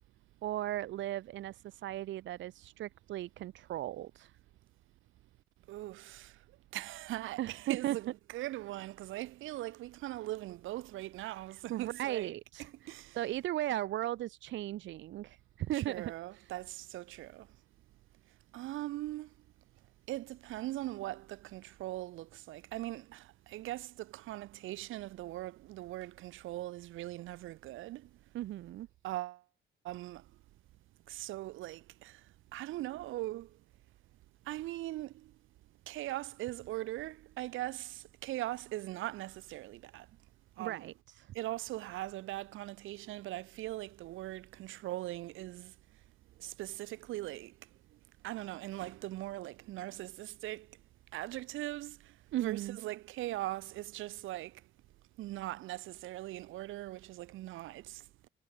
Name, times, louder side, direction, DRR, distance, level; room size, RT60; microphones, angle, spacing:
voice 1, 0.4-4.3 7.4-8.0 11.7-16.5 28.3-28.9 40.6-41.3 52.3-52.8, right 14 dB, 70° right, 0.6 m, -37 dB
voice 2, 5.7-6.3 6.7-13.2 15.7-17.5 18.5-19.3 20.1-28.1 29.0-29.4 29.8-30.2 31.1-32.2 32.5-33.5 34.5-35.3 35.9-40.1 40.6-40.9 41.3-45.7 46.4-47.5 48.2-50.7 51.1-52.0 52.4-54.6 55.2-58.3, right 16 dB, 90° right, 1.9 m, -40 dB
cardioid pair, 90°, 20 cm